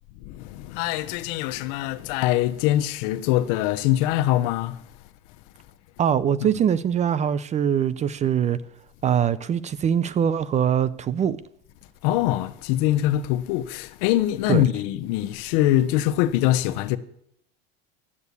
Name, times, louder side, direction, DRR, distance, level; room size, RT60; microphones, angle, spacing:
voice 1, 0.2-4.8 6.4-6.5 12.0-17.0, left 14 dB, 65° left, 0.9 m, -23 dB
voice 2, 6.0-8.6 9.0-11.4 14.5-14.6, right 8 dB, 25° right, 0.5 m, -22 dB
11.0 x 8.3 x 8.3 m
supercardioid pair, 130°, 30 cm